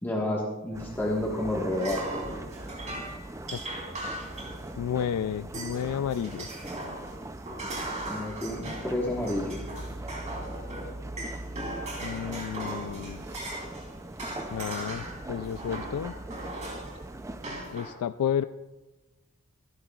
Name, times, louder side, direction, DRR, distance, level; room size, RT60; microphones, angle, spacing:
voice 1, 0.0-2.1 8.0-9.6, left 1 dB, 10° left, -4 dB, 1.4 m, -30 dB
sound 1, 0.7-17.5, right 1 dB, 15° right, 0.4 m, -41 dB
sound 2, 1.7-5.0 5.5-5.9 6.1-13.9 14.2-17.0 17.4-17.9, right 1 dB, 30° right, 3.3 m, -38 dB
voice 2, 4.8-6.5 12.0-13.2 14.5-16.1 17.7-18.4, left 8 dB, 80° left, 12 dB, 0.3 m, -31 dB
25.0 x 11.0 x 2.4 m, 1.1 s
head